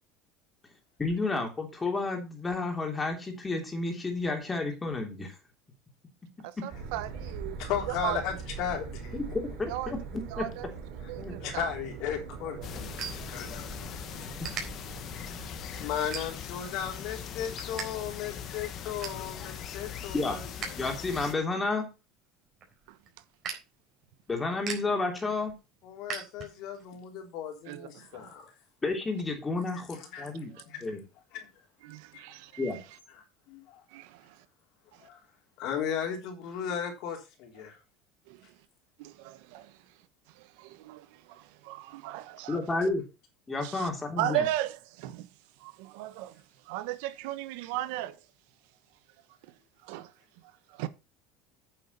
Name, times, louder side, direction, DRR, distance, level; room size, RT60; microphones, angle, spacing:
voice 1, 1.0-5.4 6.6-6.7 9.1-9.2 9.6-10.0 10.4-10.5 11.2-11.3 14.4-14.5 20.1-20.4 20.8-21.9 24.3-25.5 28.8-30.5 30.8-31.0 32.6-32.8 42.5-43.0 43.5-44.4, left 3 dB, 15° left, 3.1 m, -31 dB
voice 2, 6.4-7.6 7.9-8.2 9.7-9.9 10.3-10.7 11.1-11.7 12.5-12.7 22.9-23.0 27.7-28.3 30.6-30.7 31.8-32.8 33.9-34.4 34.9-35.1 38.3-38.5 39.0-39.8 40.3-42.6 43.6-43.9 44.2-45.3 45.6-48.2 49.8-50.1 50.4-50.9, right 14 dB, 80° right, 1.1 m, -36 dB
sound 1, 6.7-15.9, right 5 dB, 55° right, 4.2 m, -42 dB
voice 3, 7.6-9.2 11.4-12.8 13.1-13.9 15.4-20.5 25.8-28.5 29.9-30.9 31.3-31.5 32.1-32.2 33.5-33.8 35.0-35.2 35.6-37.8, left 8 dB, 60° left, 3.3 m, -36 dB
sound 2, 11.9-13.9 14.2-14.6 15.2-15.4 16.0-16.7 17.1-17.9 18.2-18.3 18.6-19.3 19.7-20.7 21.1-26.8, right 6 dB, 35° right, 4.0 m, -41 dB
sound 3, 12.6-21.3, left 8 dB, 40° left, 1.5 m, -40 dB
9.2 x 7.0 x 5.4 m
cardioid pair, 145°, 0 cm